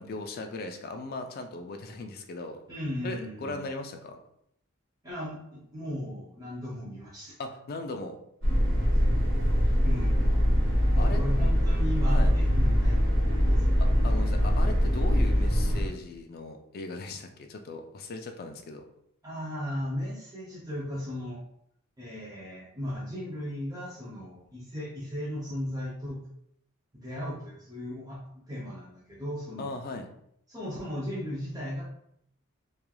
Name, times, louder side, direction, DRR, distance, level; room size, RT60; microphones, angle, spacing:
voice 1, 0.0-2.6 3.0-4.2 7.4-8.1 11.0-11.2 12.1-12.3 13.8-18.8 29.6-30.1, left 3 dB, 50° left, 5 dB, 0.3 m, -38 dB
voice 2, 2.7-3.7 5.0-7.4 9.8-10.2 10.9-13.0 13.5-13.7 19.2-21.4 22.0-26.2 26.9-29.9 30.5-31.8, equal, 20° right, -6 dB, 0.5 m, -36 dB
sound 1, 8.4-15.9, equal, 75° right, 1.0 m, -23 dB
3.0 x 2.3 x 2.2 m, 0.72 s
head